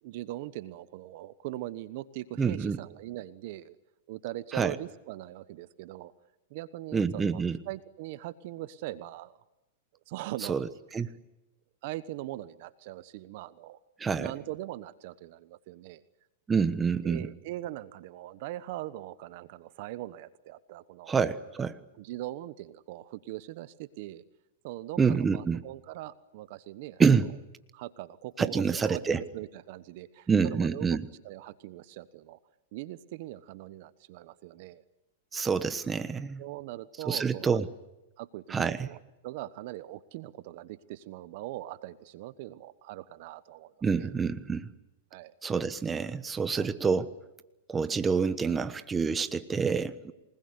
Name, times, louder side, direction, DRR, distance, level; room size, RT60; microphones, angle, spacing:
voice 1, 0.0-3.7 4.1-6.1 6.5-9.4 10.1-10.6 11.8-13.8 14.2-16.0 17.0-21.1 22.0-24.2 24.6-27.0 27.7-32.4 32.7-34.8 36.4-37.6 38.2-39.0 39.2-44.1 45.1-45.3 46.6-46.7, right 15 dB, 55° right, 15 dB, 1.1 m, -41 dB
voice 2, 2.4-2.8 4.5-4.7 6.9-7.6 10.5-10.7 10.9-11.1 14.0-14.3 16.5-17.3 21.1-21.8 25.0-25.6 27.0-27.3 28.4-29.2 30.3-31.1 35.3-36.4 37.1-37.7 38.5-38.9 43.8-44.7 45.4-47.1 47.7-50.1, right 5 dB, 15° right, 12 dB, 1.2 m, -27 dB
27.5 x 20.0 x 9.6 m, 0.99 s
hypercardioid pair, 130°, 0 cm